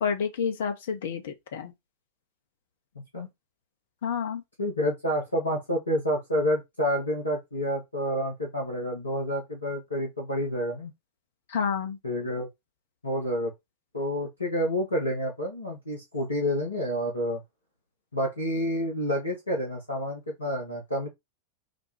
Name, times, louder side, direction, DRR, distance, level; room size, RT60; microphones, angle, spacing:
voice 1, 0.0-1.7 4.0-4.4 11.5-12.0, left 6 dB, 60° left, 0.9 m, -29 dB
voice 2, 4.6-10.9 12.0-12.5 13.0-13.5 13.9-17.4 18.1-21.1, equal, 80° left, 1.2 m, -29 dB
4.3 x 2.3 x 4.5 m
figure-of-eight pair, 90°, 0 cm